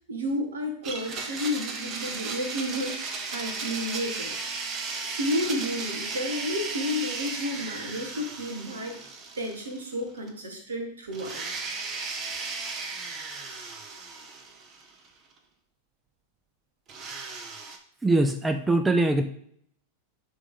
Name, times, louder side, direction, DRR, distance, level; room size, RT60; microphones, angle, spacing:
voice 1, 0.1-4.4 5.0-9.0 9.4-11.4, left 1 dB, 70° right, 4 dB, 1.6 m, -31 dB
Domestic sounds home sounds, 0.8-10.0 10.3-10.4 11.1-15.1 16.9-17.8, right 4 dB, 35° right, 1.0 m, -35 dB
voice 2, 18.0-19.2, right 2 dB, 10° right, 8 dB, 0.5 m, -22 dB
11.0 x 3.6 x 3.8 m, 0.66 s
figure-of-eight pair, 90°, 0 cm